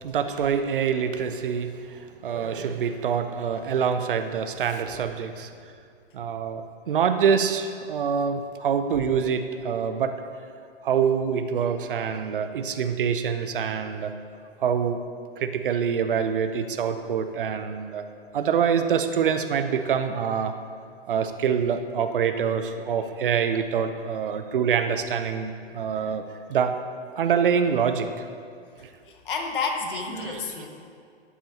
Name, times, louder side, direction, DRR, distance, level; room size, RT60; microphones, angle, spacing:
voice 1, 0.0-5.5 6.1-6.6 6.9-10.1 10.8-14.1 14.6-15.0 15.4-18.0 18.3-20.5 21.1-26.2 26.5-26.7 27.2-28.1 28.8-28.9 29.6-29.7 30.1-30.5, right 7 dB, 55° right, 9 dB, 0.8 m, -25 dB
voice 2, 28.8-30.7, left 5 dB, 55° left, 2 dB, 1.6 m, -31 dB
14.0 x 11.5 x 2.9 m, 2.3 s
figure-of-eight pair, 115°, 32 cm